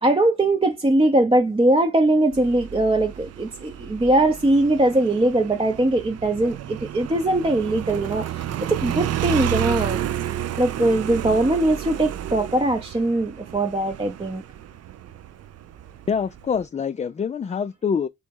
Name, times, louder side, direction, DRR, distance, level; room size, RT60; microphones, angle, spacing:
voice 1, 0.0-10.0 10.6-14.4, right 1 dB, 20° right, 0.7 m, -21 dB
Motorcycle, 2.3-16.6, right 11 dB, 55° right, 0.4 m, -31 dB
voice 2, 16.1-18.1, left 6 dB, 25° left, 0.3 m, -25 dB
3.4 x 3.1 x 4.5 m
supercardioid pair, 50°, 31 cm